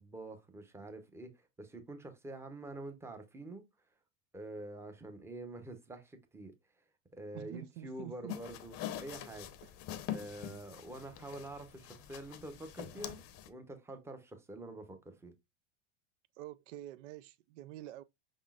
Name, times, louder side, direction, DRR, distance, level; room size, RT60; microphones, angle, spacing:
voice 1, 0.0-3.6 4.3-6.5 7.1-9.5 10.1-13.2 13.5-15.3, right 2 dB, 5° right, 0.7 m, -46 dB
voice 2, 7.3-8.4 9.6-9.7 16.4-18.0, right 14 dB, 80° right, 0.5 m, -47 dB
sound 1, 8.3-13.5, left 11 dB, 40° left, 0.6 m, -44 dB
5.4 x 3.6 x 2.3 m
supercardioid pair, 125°, 36 cm